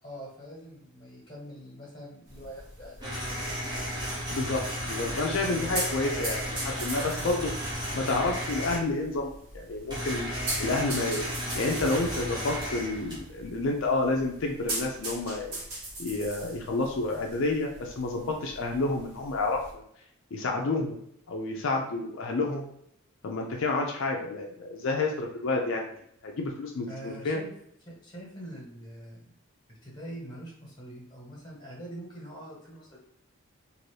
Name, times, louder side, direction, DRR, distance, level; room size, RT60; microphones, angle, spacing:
voice 1, 0.0-3.8 5.4-5.7 7.2-7.4 26.9-27.5 27.8-29.3 29.7-33.0, right 1 dB, 20° left, -4 dB, 1.1 m, -44 dB
sound 1, 2.3-19.7, right 2 dB, 75° right, 1.2 m, -41 dB
sound 2, 3.0-8.8 9.9-13.5, equal, 20° right, 0.8 m, -34 dB
voice 2, 4.3-4.6 4.9-7.5 7.9-11.3 11.5-15.6 16.0-19.8 20.3-21.0 21.3-22.7 23.2-25.9 26.2-27.4, left 3 dB, 55° left, 1 dB, 0.4 m, -29 dB
2.6 x 2.6 x 3.2 m, 0.73 s
head